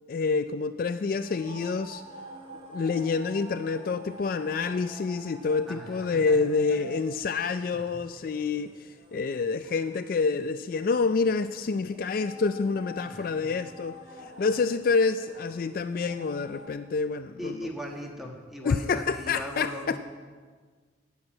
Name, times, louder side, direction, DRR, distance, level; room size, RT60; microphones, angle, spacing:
voice 1, 0.1-2.0 2.7-14.0 14.4-17.7 18.6-20.0, left 4 dB, 50° left, 10 dB, 0.3 m, -27 dB
sound 1, 1.2-16.7, equal, 30° right, 1.3 m, -48 dB
voice 2, 5.7-6.9 7.7-8.0 13.1-13.4 17.4-20.0, equal, ahead, 0 dB, 1.4 m, -39 dB
9.8 x 7.2 x 8.6 m, 1.5 s
head